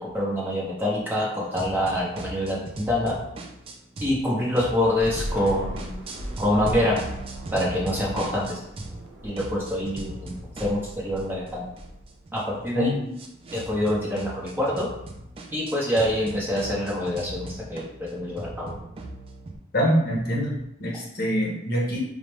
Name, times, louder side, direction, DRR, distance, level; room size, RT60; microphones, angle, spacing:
voice 1, 0.0-3.2 4.0-5.9 6.4-7.0 7.5-8.6 9.2-11.7 12.3-12.9 13.5-14.9 15.5-18.7, left 1 dB, 10° right, -5 dB, 0.7 m, -26 dB
sound 1, 1.6-4.2 4.5-9.1 9.4-19.6, right 2 dB, 30° right, 0.3 m, -39 dB
Thunder / Rain, 5.0-12.5, equal, 70° right, 0.8 m, -39 dB
voice 2, 12.7-13.1 19.7-22.0, equal, 45° left, -2 dB, 0.8 m, -25 dB
4.8 x 2.1 x 3.0 m, 0.79 s
head